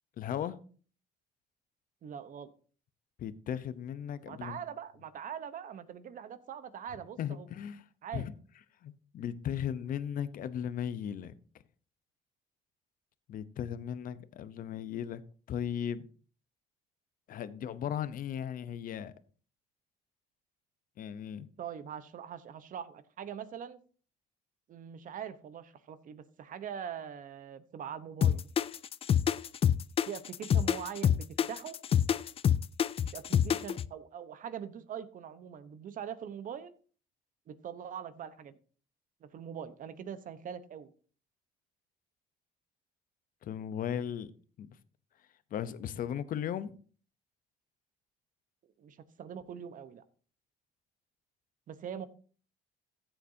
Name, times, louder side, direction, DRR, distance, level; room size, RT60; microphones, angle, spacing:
voice 1, 0.2-0.6 3.2-4.6 7.2-7.8 8.1-8.3 8.8-11.3 13.3-15.2 15.5-16.1 17.3-19.1 21.0-21.5 43.4-44.3 44.6-44.7 45.5-46.7, left 9 dB, 55° left, 0.8 m, -36 dB
voice 2, 2.0-2.5 4.2-7.5 8.0-8.2 21.6-23.8 24.7-28.5 30.1-31.8 33.0-36.7 37.5-38.5 39.2-40.9 48.8-50.0 51.7-52.1, right 8 dB, 50° right, 1.0 m, -42 dB
sound 1, 28.2-33.9, left 9 dB, 35° left, 0.4 m, -26 dB
14.5 x 7.9 x 2.7 m
cardioid pair, 110°, 17 cm